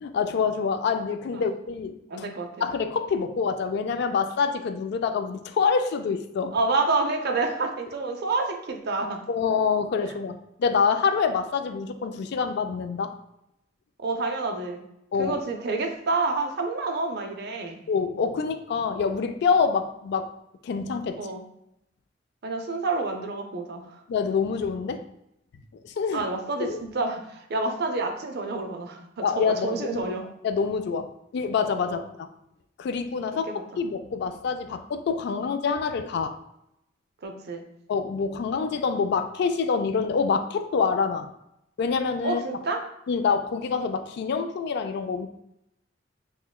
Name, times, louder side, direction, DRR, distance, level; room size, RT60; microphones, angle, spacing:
voice 1, 0.0-2.3 2.6-6.6 9.3-13.1 15.1-15.4 17.9-20.3 20.6-21.2 24.1-25.0 25.8-26.2 26.6-26.8 29.2-30.1 30.4-32.3 32.8-33.5 33.8-36.4 37.9-41.3 41.8-42.4 43.1-45.3, left 5 dB, 60° left, 8 dB, 0.3 m, -26 dB
voice 2, 2.1-2.5 6.5-9.2 14.0-14.8 15.2-17.8 21.2-21.4 22.4-24.0 26.1-30.2 31.8-32.0 33.5-33.8 37.2-37.6 42.2-42.8, right 3 dB, 60° right, 4 dB, 0.5 m, -28 dB
5.5 x 2.1 x 2.2 m, 0.82 s
head